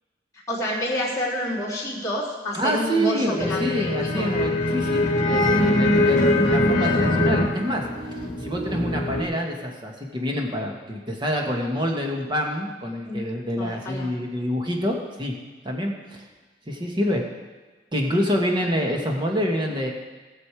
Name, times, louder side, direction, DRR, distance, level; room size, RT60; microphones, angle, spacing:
voice 1, 0.5-4.3 13.1-13.2 13.6-14.2, left 1 dB, 20° left, -6 dB, 3.4 m, -28 dB
voice 2, 2.5-7.9 8.1-15.3 15.6-16.3 16.7-17.2 17.9-19.9, equal, 30° right, 1 dB, 1.8 m, -27 dB
sound 1, 3.4-9.2, left 1 dB, 45° left, 1.6 m, -22 dB
19.0 x 6.8 x 4.9 m, 1.3 s
head